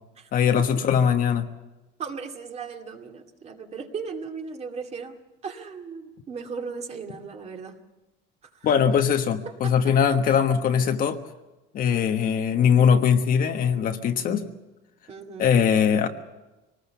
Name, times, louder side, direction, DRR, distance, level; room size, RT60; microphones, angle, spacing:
voice 1, 0.3-1.5 8.6-11.2 11.7-14.4 15.4-16.1, left 7 dB, 45° left, 6 dB, 1.3 m, -21 dB
voice 2, 2.0-5.2 5.4-7.8 8.5-8.7 9.5-9.9 15.1-15.6, right 5 dB, 30° right, 3 dB, 2.2 m, -37 dB
25.5 x 19.5 x 7.1 m, 1.0 s
cardioid pair, 165°, 21 cm